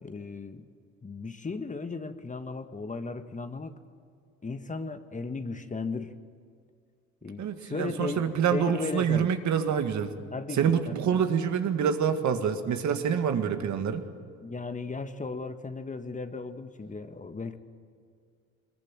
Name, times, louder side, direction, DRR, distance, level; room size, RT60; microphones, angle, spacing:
voice 1, 0.0-0.7 1.0-3.8 4.4-6.1 7.2-9.3 10.3-11.2 14.4-17.6, left 3 dB, 25° left, 9 dB, 1.4 m, -36 dB
voice 2, 7.4-10.1 10.5-14.0, right 7 dB, 60° right, 7 dB, 1.9 m, -26 dB
23.0 x 21.5 x 7.5 m, 2.2 s
supercardioid pair, 75°, 32 cm